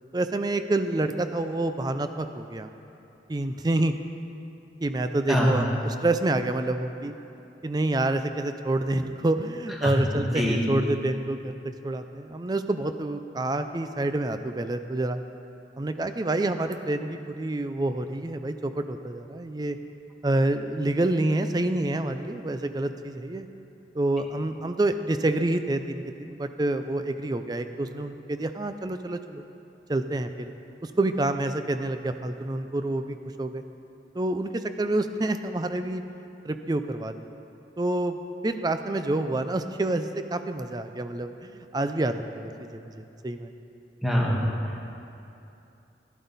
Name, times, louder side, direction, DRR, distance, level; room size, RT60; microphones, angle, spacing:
voice 1, 0.1-2.7 3.3-3.9 4.8-7.1 7.6-15.2 15.8-19.8 20.2-23.5 23.9-29.4 29.9-30.5 30.8-33.6 34.1-36.0 36.4-37.3 37.8-38.2 38.4-43.5, right 2 dB, 25° right, 9 dB, 0.4 m, -28 dB
voice 2, 9.8-10.6 44.0-44.9, equal, ahead, -4 dB, 1.5 m, -25 dB
11.5 x 11.0 x 4.1 m, 2.8 s
head